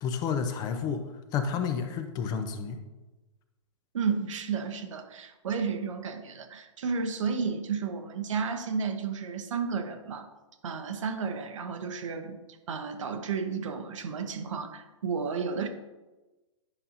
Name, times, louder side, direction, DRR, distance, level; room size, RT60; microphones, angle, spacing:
voice 1, 0.0-1.0 1.3-2.8, left 6 dB, 25° left, 7 dB, 0.5 m, -30 dB
voice 2, 3.9-10.3 10.6-12.4 12.7-15.7, right 5 dB, 75° right, 7 dB, 0.9 m, -32 dB
9.8 x 5.4 x 2.8 m, 1.1 s
hypercardioid pair, 140°, 16 cm